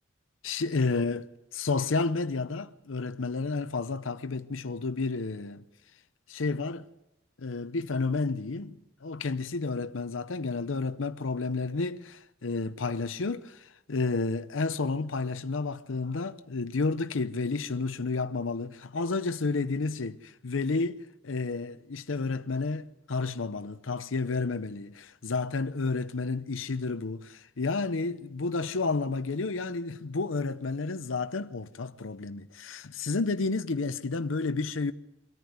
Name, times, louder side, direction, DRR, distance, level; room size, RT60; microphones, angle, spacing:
voice 1, 0.4-5.6 6.3-6.8 7.4-21.0 21.2-34.9, left 3 dB, 85° left, 0.8 m, -31 dB
24.5 x 14.0 x 9.5 m
head